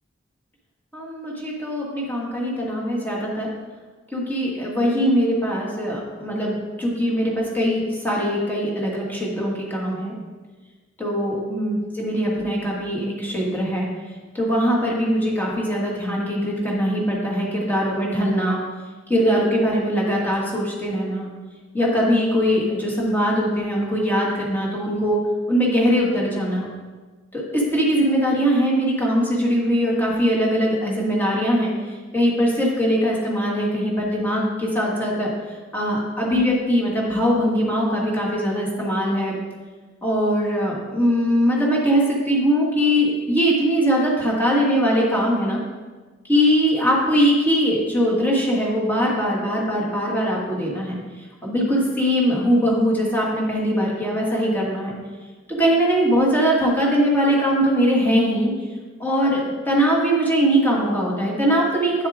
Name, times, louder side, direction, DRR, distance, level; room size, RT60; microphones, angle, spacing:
voice 1, 0.9-3.5 4.1-10.1 11.0-13.9 14.3-18.6 19.1-21.3 21.7-25.2 25.5-26.7 27.3-31.7 32.1-35.3 35.7-39.4 40.0-45.6 46.3-51.0 51.4-54.9 55.6-58.5 59.0-62.1, equal, 10° left, -4 dB, 1.8 m, -21 dB
8.9 x 7.2 x 3.7 m, 1.3 s
head